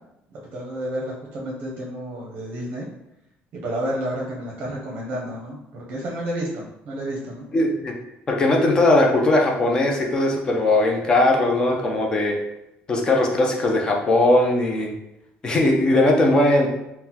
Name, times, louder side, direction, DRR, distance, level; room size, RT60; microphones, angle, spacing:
voice 1, 0.3-2.9 3.5-7.4, right 1 dB, 45° right, -2 dB, 0.6 m, -30 dB
voice 2, 7.5-7.9 8.3-12.4 12.9-14.9 15.4-16.7, left 2 dB, 20° left, 1 dB, 0.4 m, -19 dB
3.8 x 2.1 x 2.8 m, 0.86 s
cardioid pair, 180°, 4 cm